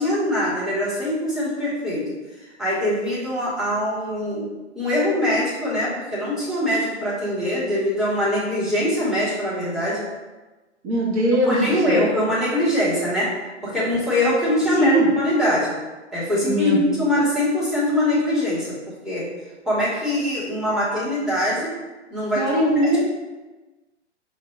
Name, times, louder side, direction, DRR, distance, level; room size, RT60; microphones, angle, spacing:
voice 1, 0.0-2.1 2.6-4.5 4.7-10.0 11.5-13.3 13.6-15.8 16.1-18.8 19.0-19.3 19.6-21.7 22.1-22.4, left 1 dB, ahead, -9 dB, 1.0 m, -23 dB
voice 2, 10.8-12.0 14.7-15.1 16.5-17.0 22.3-23.0, right 1 dB, 25° right, -4 dB, 0.7 m, -20 dB
4.9 x 2.2 x 3.5 m, 1.2 s
figure-of-eight pair, 120°, 36 cm